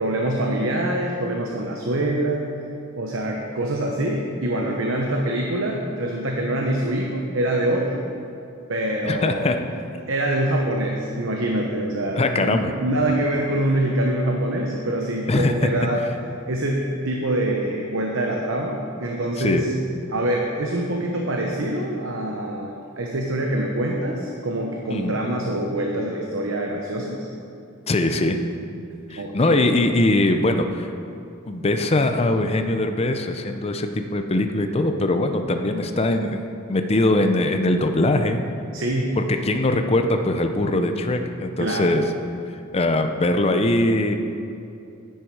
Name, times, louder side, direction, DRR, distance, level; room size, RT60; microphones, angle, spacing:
voice 1, 0.0-2.5 3.0-8.0 8.7-9.5 10.1-16.0 16.5-19.7 20.1-27.3 29.2-29.7 38.7-39.2 41.6-41.9, right 1 dB, 70° right, 0 dB, 0.9 m, -25 dB
voice 2, 9.0-9.6 12.2-12.7 15.3-15.5 19.4-19.6 24.9-25.2 27.9-28.4 29.1-30.9 31.5-36.4 36.7-38.4 39.1-42.0 42.7-44.1, left 2 dB, 30° left, 6 dB, 0.5 m, -21 dB
10.0 x 9.3 x 4.7 m, 2.7 s
head